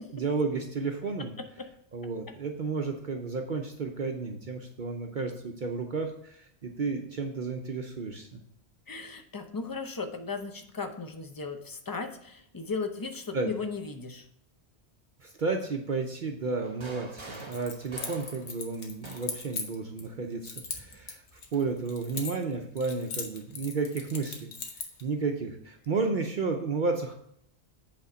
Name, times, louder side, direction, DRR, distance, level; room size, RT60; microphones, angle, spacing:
voice 1, 0.0-1.4 1.9-8.4 13.3-13.5 15.2-24.5 25.0-27.1, right 4 dB, 50° right, 3 dB, 0.7 m, -32 dB
voice 2, 8.9-14.2, left 4 dB, 25° left, 6 dB, 0.5 m, -36 dB
sound 1, 16.6-19.5 20.6-21.7, right 3 dB, 25° right, 1.0 m, -47 dB
Keys jangling, 17.3-20.1 20.4-22.5 22.8-25.0, left 5 dB, 85° left, 1.3 m, -39 dB
8.2 x 3.5 x 5.0 m, 0.70 s
omnidirectional pair, 1.1 m